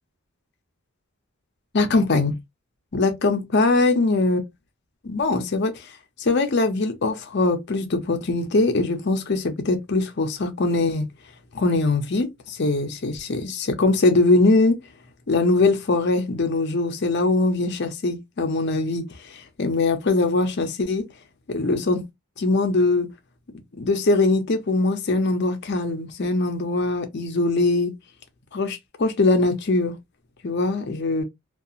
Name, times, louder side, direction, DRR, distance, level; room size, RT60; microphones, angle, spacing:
voice 1, 1.7-2.4 2.9-4.4 5.0-5.9 6.2-11.1 11.5-14.8 15.3-21.1 21.5-22.0 22.4-23.1 23.8-27.9 28.5-29.9 30.4-31.2, left 2 dB, 50° left, 0.6 m, -22 dB
2.7 x 2.3 x 2.4 m
head